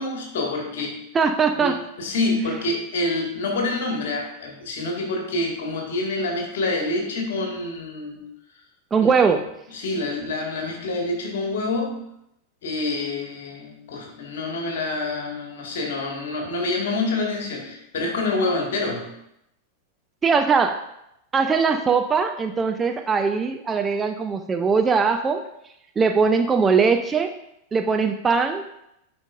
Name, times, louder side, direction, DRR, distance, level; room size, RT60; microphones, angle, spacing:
voice 1, 0.0-1.0 1.6-8.3 9.0-9.1 9.7-12.1 12.6-19.1, left 2 dB, 55° left, 1 dB, 1.7 m, -27 dB
voice 2, 1.1-1.8 8.9-9.4 20.2-20.8 21.3-25.4 26.0-27.3 27.7-28.6, right 5 dB, 20° right, 6 dB, 0.5 m, -20 dB
11.0 x 5.2 x 2.5 m, 0.81 s
figure-of-eight pair, 90°, 0 cm